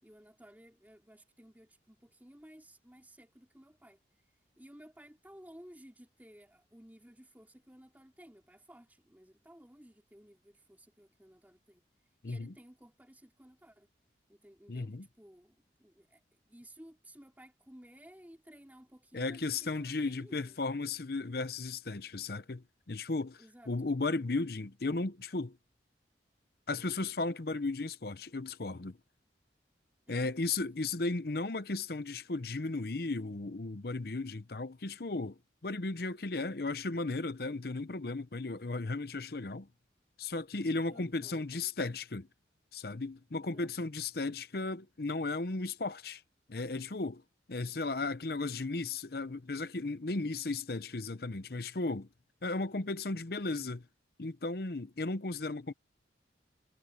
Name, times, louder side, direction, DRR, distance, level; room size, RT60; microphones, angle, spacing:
voice 1, 0.0-4.0 4.6-11.8 12.2-13.9 14.3-20.6 23.4-23.9 30.1-30.4 30.8-30.9 40.9-41.7 43.4-43.9, equal, 10° right, 3.5 m, -56 dB
voice 2, 12.2-12.5 14.7-15.1 19.1-25.6 26.7-29.0 30.1-39.7 40.2-42.3 42.7-46.2 46.5-47.2 47.5-52.1 52.4-53.9 54.2-55.7, left 3 dB, 55° left, 0.8 m, -35 dB
head